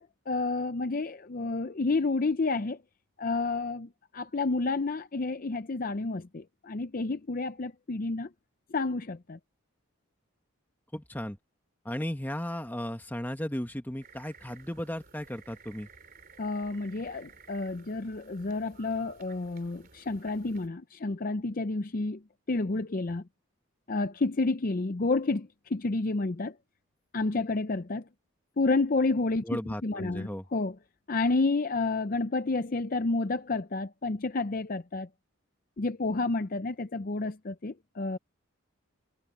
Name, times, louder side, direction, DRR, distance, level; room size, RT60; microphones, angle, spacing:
voice 1, 0.0-2.8 3.2-8.3 8.7-9.4 16.4-22.2 22.5-23.2 23.9-26.6 27.1-28.0 28.6-30.7 31.1-35.1 35.8-38.2, left 3 dB, 40° left, 0.6 m, -30 dB
voice 2, 10.9-11.4 11.8-15.9 29.4-30.5, equal, 10° left, 1.4 m, -35 dB
sound 1, 14.0-20.7, right 4 dB, 40° right, 3.6 m, -55 dB
head